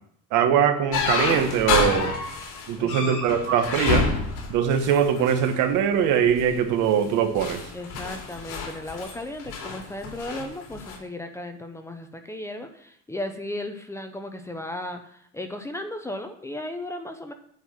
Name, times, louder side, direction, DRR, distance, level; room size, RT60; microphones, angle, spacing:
voice 1, 0.3-2.1 2.7-4.1 4.5-7.6, right 8 dB, 70° right, 8 dB, 1.2 m, -22 dB
sound 1, 0.9-5.6 6.2-6.5 7.0-11.0, left 4 dB, 70° left, 2.6 m, -28 dB
voice 2, 2.8-3.4 7.7-17.3, left 1 dB, 10° left, 6 dB, 0.6 m, -35 dB
9.4 x 4.6 x 7.1 m, 0.68 s
cardioid pair, 160°, 32 cm